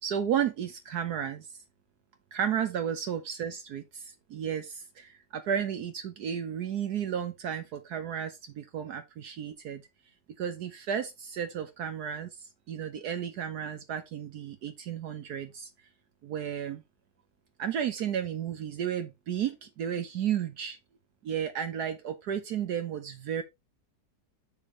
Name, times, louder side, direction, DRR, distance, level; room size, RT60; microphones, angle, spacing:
voice 1, 0.0-1.5 2.3-9.8 10.4-15.7 16.2-16.8 17.6-20.8 21.2-23.4, right 8 dB, 65° right, 1.3 m, -33 dB
7.0 x 6.4 x 3.1 m
omnidirectional pair, 1.9 m